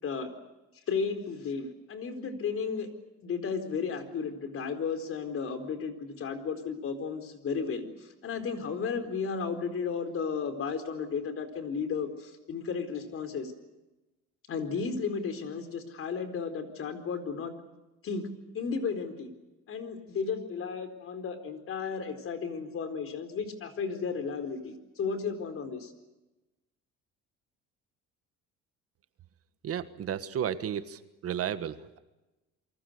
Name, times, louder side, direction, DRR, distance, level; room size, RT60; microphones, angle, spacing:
voice 1, 0.9-2.9 3.2-13.5 14.5-17.5 18.0-18.3 18.5-19.3 19.7-25.9, left 5 dB, 50° left, 8 dB, 4.4 m, -34 dB
voice 2, 29.6-32.0, right 9 dB, 50° right, 11 dB, 1.5 m, -33 dB
28.5 x 24.0 x 6.7 m, 1.1 s
cardioid pair, 125°, 29 cm